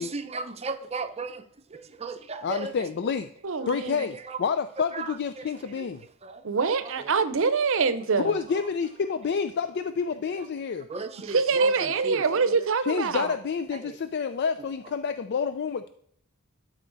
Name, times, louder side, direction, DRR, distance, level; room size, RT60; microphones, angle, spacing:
voice 1, 0.0-1.4 1.7-2.7 3.6-4.4 4.8-5.9 6.2-6.4 6.8-7.1 10.9-12.6 13.8-14.0, right 3 dB, 30° right, 0.7 m, -36 dB
voice 2, 2.4-3.3 3.7-6.0 8.2-10.9 12.8-15.9, left 6 dB, 50° left, 0.4 m, -29 dB
voice 3, 3.4-4.1 6.4-8.3 11.3-13.3, right 5 dB, 65° right, 0.7 m, -25 dB
12.5 x 4.5 x 4.0 m
head